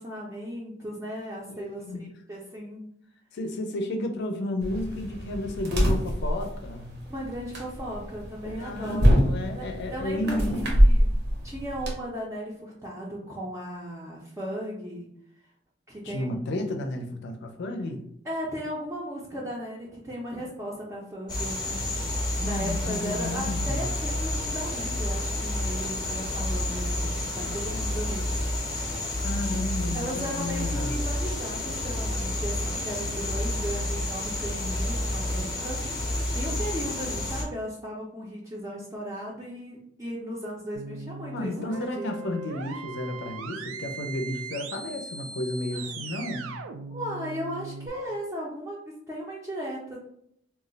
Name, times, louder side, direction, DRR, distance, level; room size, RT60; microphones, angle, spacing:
voice 1, 0.0-2.8 7.1-9.2 9.5-11.1 11.4-15.1 15.9-16.4 18.2-21.9 22.4-28.3 29.9-42.2 45.7-45.9 46.9-48.8 49.1-50.0, equal, 15° right, -5 dB, 0.4 m, -36 dB
voice 2, 1.5-2.1 3.3-6.9 8.4-10.7 16.0-18.1 22.4-23.9 29.2-31.0 41.3-46.5, left 1 dB, 60° left, 5 dB, 0.4 m, -32 dB
sound 1, 4.6-11.9, equal, 55° right, 0.7 m, -25 dB
sound 2, 21.3-37.4, left 1 dB, 20° left, 0.7 m, -30 dB
sound 3, 40.7-47.9, right 4 dB, 75° right, 0.3 m, -39 dB
2.3 x 2.0 x 3.8 m, 0.69 s
head